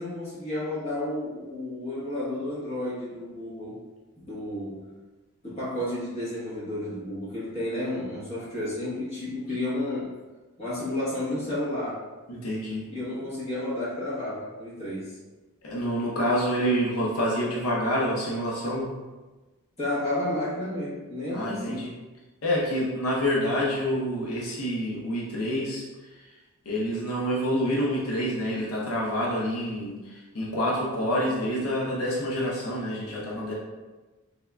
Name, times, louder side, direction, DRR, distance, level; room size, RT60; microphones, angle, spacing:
voice 1, 0.0-3.7 4.2-4.8 5.4-10.1 10.6-12.0 12.9-15.2 19.8-21.9, left 1 dB, 30° left, -8 dB, 1.2 m, -31 dB
voice 2, 12.3-12.8 15.6-18.9 21.3-21.9 22.4-25.8 26.7-33.5, equal, 80° left, -5 dB, 0.7 m, -27 dB
3.6 x 3.4 x 2.2 m, 1.2 s
head